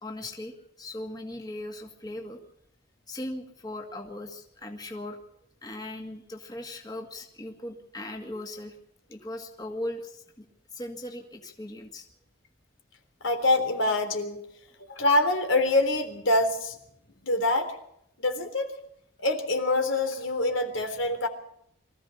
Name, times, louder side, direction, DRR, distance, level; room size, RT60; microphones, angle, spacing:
voice 1, 0.0-2.4 3.1-5.2 5.6-8.8 9.1-10.5 10.7-12.0, left 1 dB, 20° left, 2 dB, 2.3 m, -38 dB
voice 2, 13.2-14.4 14.9-16.8 17.2-17.8 18.2-18.7 19.2-21.3, left 2 dB, 80° left, 5 dB, 3.6 m, -25 dB
24.5 x 15.0 x 7.1 m, 0.72 s
head